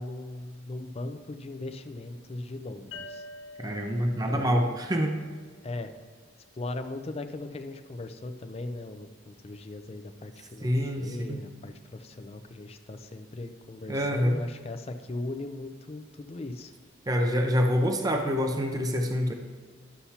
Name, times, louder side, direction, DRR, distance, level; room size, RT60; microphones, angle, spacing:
voice 1, 0.0-3.2 4.3-4.8 5.6-5.9 6.5-10.7 11.0-16.7, left 2 dB, 30° left, 8 dB, 0.4 m, -38 dB
sound 1, 2.9-6.4, left 2 dB, 70° left, 0.9 m, -47 dB
voice 2, 3.6-5.1 10.6-11.4 13.9-14.4 17.1-19.3, equal, 20° right, 4 dB, 0.5 m, -26 dB
11.5 x 6.8 x 2.9 m, 1.5 s
head